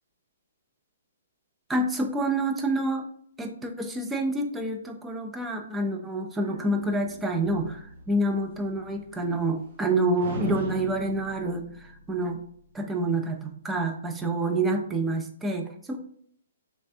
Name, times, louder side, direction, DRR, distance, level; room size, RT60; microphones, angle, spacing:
voice 1, 1.7-3.1 3.4-11.7 12.1-12.4 12.7-16.0, right 2 dB, 10° right, 3 dB, 0.4 m, -28 dB
sound 1, 6.4-9.8 10.2-12.8, right 1 dB, 50° right, 0.9 m, -40 dB
3.2 x 3.1 x 2.7 m, 0.64 s
hypercardioid pair, 145°, 0 cm